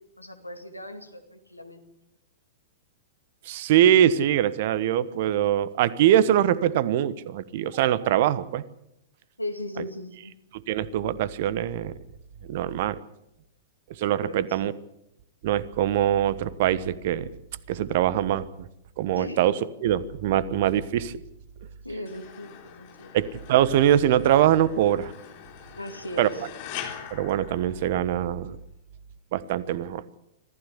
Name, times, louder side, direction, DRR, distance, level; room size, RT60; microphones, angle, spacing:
voice 1, 0.2-1.8 9.4-10.3 14.2-14.6 19.2-19.4 21.8-23.1 25.8-26.3, left 1 dB, 85° left, 7 dB, 2.4 m, -37 dB
voice 2, 3.5-8.6 10.5-11.9 12.5-13.0 14.0-14.7 15.4-17.3 17.7-18.7 19.0-21.2 23.1-25.1 26.2-26.5 27.1-28.6 29.3-30.0, right 11 dB, 50° right, 18 dB, 1.1 m, -23 dB
sound 1, 22.1-28.3, left 9 dB, 45° left, 3.9 m, -43 dB
25.0 x 15.0 x 8.3 m, 0.85 s
figure-of-eight pair, 100°, 0 cm